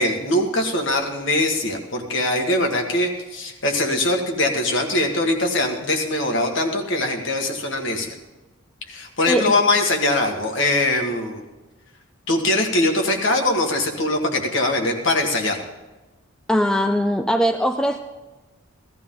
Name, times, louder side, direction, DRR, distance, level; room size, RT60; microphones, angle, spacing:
voice 1, 0.0-8.1 8.9-11.4 12.3-15.6, left 2 dB, 55° left, 2 dB, 1.8 m, -22 dB
voice 2, 16.5-18.0, equal, 5° left, 6 dB, 0.4 m, -20 dB
16.5 x 14.0 x 3.8 m, 1.2 s
head